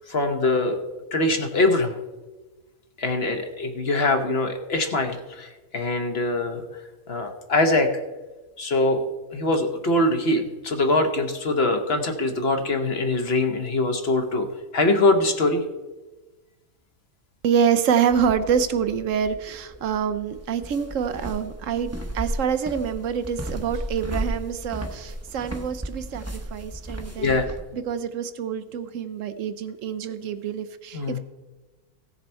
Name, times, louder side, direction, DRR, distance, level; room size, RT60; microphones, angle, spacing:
voice 1, 0.1-0.8 1.1-2.0 3.0-7.9 8.6-9.0 9.3-14.5 14.7-15.6 27.2-27.5 30.9-31.2, left 2 dB, 50° left, 6 dB, 1.1 m, -23 dB
voice 2, 17.4-27.4 27.7-31.2, right 7 dB, 70° right, 11 dB, 0.9 m, -26 dB
sound 1, 18.1-27.6, right 1 dB, 15° right, 0.7 m, -35 dB
16.0 x 6.9 x 4.3 m, 1.2 s
omnidirectional pair, 1.5 m